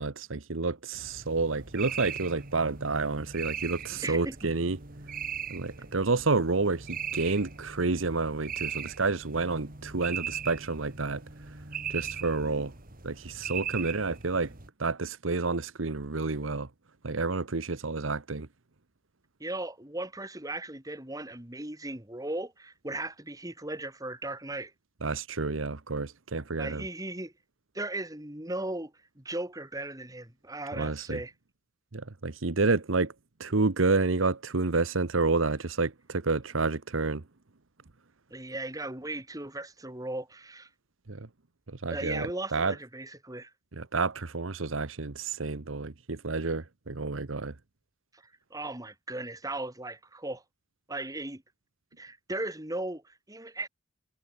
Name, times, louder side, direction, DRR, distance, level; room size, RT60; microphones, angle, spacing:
voice 1, 0.0-4.8 5.5-11.2 11.9-12.7 13.0-14.5 14.8-16.7 17.0-18.5 25.0-26.8 30.8-31.2 31.9-33.1 33.4-37.2 41.1-41.3 41.7-42.7 43.8-47.5, right 3 dB, 80° right, 1.1 m, -29 dB
sound 1, 0.9-14.7, right 7 dB, 45° right, 2.1 m, -39 dB
voice 2, 3.9-4.5 12.4-12.7 19.4-24.7 26.6-27.3 27.7-31.3 38.3-40.7 41.9-43.5 48.1-48.2 48.5-50.4 50.9-51.4 52.0-53.7, right 2 dB, 15° right, 2.8 m, -37 dB
head